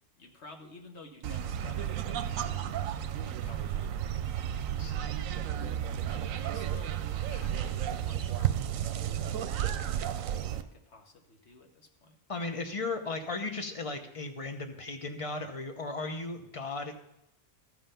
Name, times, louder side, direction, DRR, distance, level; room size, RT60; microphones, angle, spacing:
voice 1, 0.2-5.1 5.9-12.2, left 3 dB, 55° left, 4 dB, 1.4 m, -53 dB
sound 1, 1.2-10.6, right 10 dB, 80° right, 1.0 m, -32 dB
voice 2, 12.3-16.9, left 3 dB, 30° left, 6 dB, 0.8 m, -36 dB
13.5 x 5.6 x 5.6 m, 0.85 s
omnidirectional pair, 1.4 m